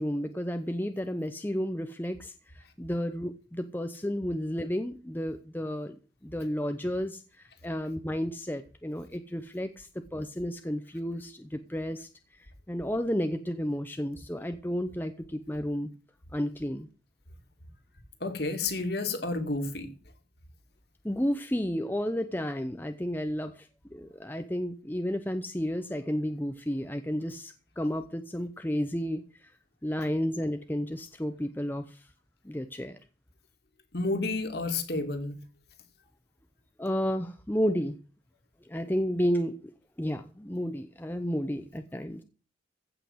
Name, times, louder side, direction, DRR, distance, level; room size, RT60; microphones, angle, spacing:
voice 1, 0.0-6.0 6.2-7.2 7.6-12.1 12.7-15.9 16.3-16.9 21.0-29.2 29.8-32.0 32.4-33.0 36.8-38.0 38.7-39.7 40.0-42.2, equal, 10° left, 7 dB, 0.7 m, -32 dB
voice 2, 18.2-19.9 33.9-35.4, left 3 dB, 55° left, 6 dB, 2.3 m, -30 dB
15.0 x 5.9 x 7.8 m, 0.36 s
head